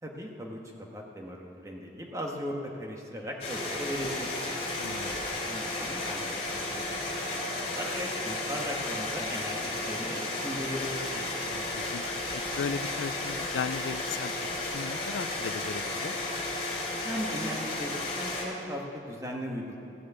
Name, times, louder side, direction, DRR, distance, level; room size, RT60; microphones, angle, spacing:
voice 1, 0.0-4.6 5.0-11.2 17.0-19.8, equal, 20° right, 0 dB, 1.4 m, -38 dB
sound 1, 3.4-18.4, left 2 dB, 35° left, 2.9 m, -33 dB
voice 2, 4.8-5.2 11.5-14.5 14.7-16.2, left 6 dB, 85° left, 14 dB, 0.4 m, -37 dB
15.0 x 6.5 x 8.0 m, 2.7 s
head